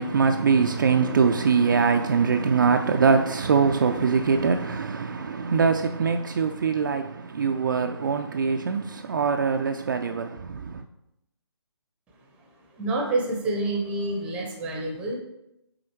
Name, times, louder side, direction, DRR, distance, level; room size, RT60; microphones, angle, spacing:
voice 1, 0.0-10.8, right 5 dB, 45° right, 0.4 m, -23 dB
voice 2, 12.4-15.2, right 2 dB, 10° right, 0.7 m, -28 dB
6.3 x 3.9 x 4.4 m
figure-of-eight pair, 155°, 15 cm